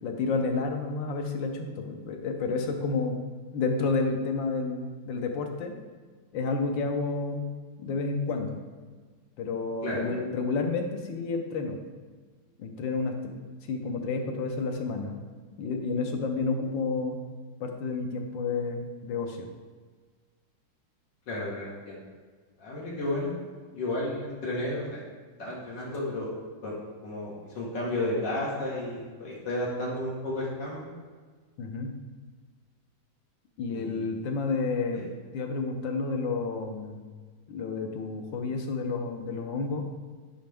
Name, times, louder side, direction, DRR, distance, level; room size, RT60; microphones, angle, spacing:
voice 1, 0.0-3.2 3.5-5.7 6.3-7.5 7.8-8.6 9.4-11.8 12.6-13.4 13.7-15.2 15.6-17.2 17.6-19.5 31.6-31.9 33.6-35.0 35.3-37.1 37.5-39.9, left 4 dB, 85° left, 3 dB, 1.6 m, -30 dB
voice 2, 21.3-22.0 22.6-23.3 23.7-25.0 25.4-26.3 26.6-26.7 27.0-30.9 33.7-34.1 34.9-35.1, left 1 dB, 70° left, -6 dB, 2.3 m, -32 dB
10.0 x 5.1 x 3.5 m, 1.5 s
omnidirectional pair, 2.0 m